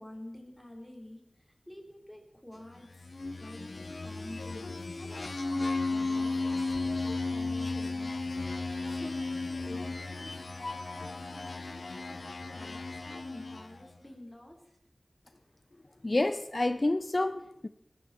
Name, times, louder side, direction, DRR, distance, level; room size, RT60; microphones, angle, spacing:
voice 1, 0.0-2.9 3.4-5.2 5.5-8.1 8.8-14.7, left 1 dB, 15° left, 3.9 m, -49 dB
sound 1, 3.0-13.9, left 3 dB, 65° left, 1.0 m, -35 dB
voice 2, 16.0-17.7, left 2 dB, 40° left, 0.6 m, -29 dB
20.5 x 11.5 x 4.3 m
wide cardioid pair, 50°, 0 cm